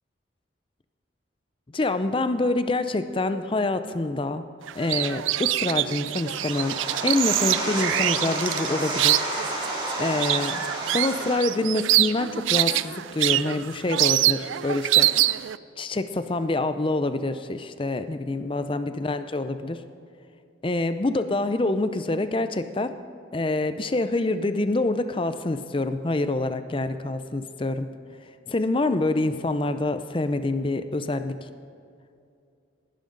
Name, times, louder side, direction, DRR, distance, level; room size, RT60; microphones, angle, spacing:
voice 1, 1.7-4.4 4.8-6.8 7.0-9.3 10.0-10.6 10.9-15.1 15.8-19.8 20.6-22.9 23.3-27.9 28.5-31.5, left 2 dB, 25° left, 10 dB, 0.5 m, -26 dB
sound 1, 4.7-15.6, right 15 dB, 85° right, 0.3 m, -25 dB
sound 2, 6.1-11.4, right 1 dB, 25° right, 2.5 m, -30 dB
19.0 x 11.5 x 3.9 m, 2.5 s
head